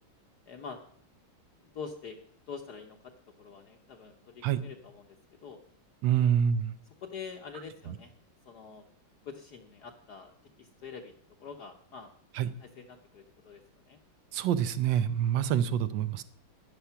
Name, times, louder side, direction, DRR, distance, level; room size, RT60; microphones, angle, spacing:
voice 1, 0.5-0.8 1.6-2.2 2.5-3.1 3.4-5.2 5.4-5.6 6.2-6.3 7.0-8.1 8.4-8.8 9.2-10.3 10.6-11.1 11.4-12.1 12.6-14.0 15.2-15.3, left 5 dB, 60° left, 3 dB, 1.4 m, -45 dB
voice 2, 6.0-6.7 12.4-12.5 14.3-16.2, right 9 dB, 70° right, 13 dB, 1.3 m, -26 dB
12.5 x 10.0 x 5.8 m, 0.64 s
omnidirectional pair, 2.3 m